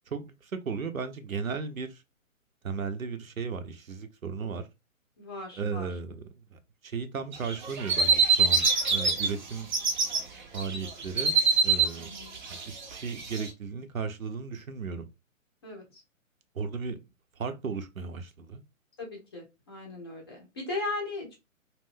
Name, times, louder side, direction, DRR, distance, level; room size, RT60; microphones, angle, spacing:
voice 1, 0.1-2.0 2.6-4.7 5.6-9.7 10.5-11.4 11.6-12.1 12.5-15.1 16.5-17.0 17.4-18.6, right 5 dB, 80° right, 0.7 m, -35 dB
voice 2, 5.2-5.9 11.9-12.4 15.6-16.0 19.0-21.4, left 2 dB, 20° left, 0.5 m, -37 dB
sound 1, 7.3-9.3 9.6-10.2 10.5-13.5, right 5 dB, 35° right, 0.5 m, -24 dB
2.4 x 2.2 x 3.4 m
figure-of-eight pair, 130°, 41 cm